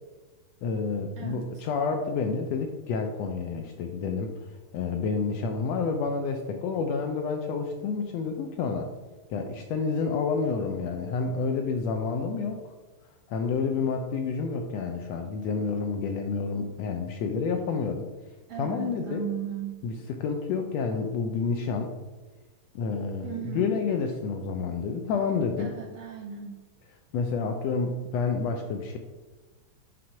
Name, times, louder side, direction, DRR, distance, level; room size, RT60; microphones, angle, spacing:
voice 1, 0.6-4.3 4.7-8.9 9.3-12.6 13.3-18.1 18.6-19.2 19.8-21.9 22.7-25.7 27.1-29.0, left 5 dB, 80° left, 4 dB, 1.6 m, -29 dB
voice 2, 1.2-1.6 18.5-19.8 23.2-23.8 25.6-26.6, right 9 dB, 70° right, 1 dB, 1.5 m, -36 dB
6.3 x 3.8 x 5.6 m, 1.3 s
omnidirectional pair, 3.4 m